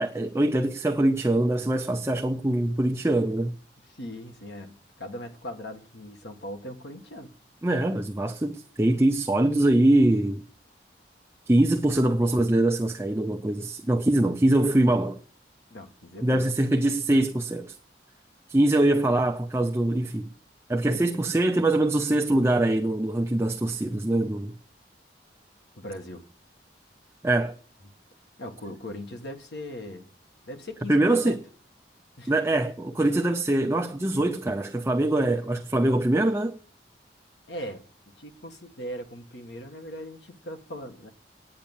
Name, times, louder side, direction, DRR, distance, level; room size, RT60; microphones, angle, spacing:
voice 1, 0.0-3.5 7.6-10.4 11.5-15.2 16.2-17.7 18.5-20.3 20.7-24.5 27.2-27.5 30.9-31.4 32.3-36.6, right 1 dB, 15° right, 0.5 m, -23 dB
voice 2, 3.9-7.3 15.7-16.5 20.9-21.0 25.8-26.2 28.4-30.1 30.5-31.4 32.2-32.3 37.5-37.8 38.2-41.1, equal, 75° left, 1.7 m, -39 dB
9.6 x 8.7 x 7.2 m
head